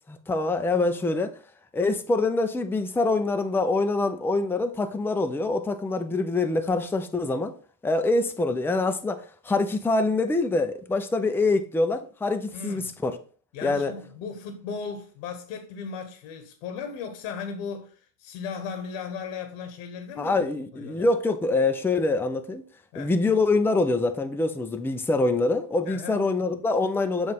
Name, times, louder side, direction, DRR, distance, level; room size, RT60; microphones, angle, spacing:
voice 1, 0.1-1.3 1.7-7.6 7.8-13.2 13.6-13.9 20.2-22.6 23.0-27.3, left 3 dB, 5° left, 0.6 m, -25 dB
voice 2, 12.5-13.0 13.5-20.4 20.7-21.1 22.9-23.1 25.8-26.2, left 6 dB, 70° left, 1.3 m, -36 dB
7.5 x 2.6 x 5.4 m
hypercardioid pair, 80°, 47 cm